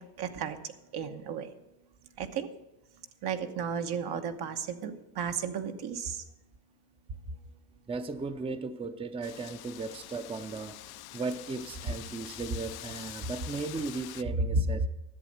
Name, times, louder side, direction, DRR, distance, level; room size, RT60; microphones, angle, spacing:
voice 1, 0.0-1.5 2.2-2.5 3.2-6.2, right 7 dB, 65° right, 6 dB, 1.2 m, -35 dB
voice 2, 7.9-10.8 11.1-14.9, right 4 dB, 15° right, 10 dB, 0.6 m, -36 dB
Wind, 9.2-14.2, left 16 dB, 65° left, 0.5 m, -45 dB
11.0 x 7.8 x 6.5 m, 0.96 s
cardioid pair, 85°, 41 cm